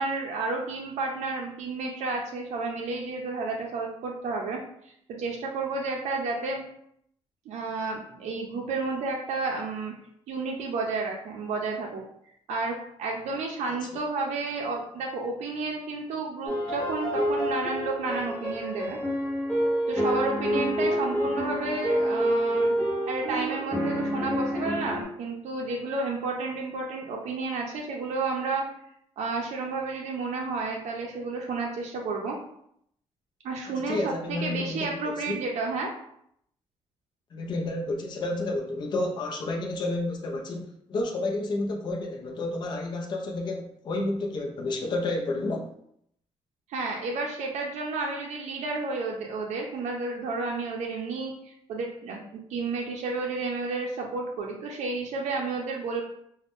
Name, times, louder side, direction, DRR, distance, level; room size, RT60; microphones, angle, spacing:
voice 1, 0.0-6.6 7.5-9.9 10.3-12.0 12.5-19.0 19.9-22.7 23.1-28.6 29.2-32.4 33.4-35.9 46.7-56.0, right 3 dB, 85° right, 0 dB, 0.4 m, -31 dB
sound 1, 16.5-25.0, equal, 10° left, 0.8 m, -28 dB
voice 2, 33.7-35.4 37.3-45.7, left 2 dB, 40° left, 1 dB, 0.4 m, -30 dB
2.5 x 2.1 x 3.4 m, 0.71 s
cardioid pair, 145°, 11 cm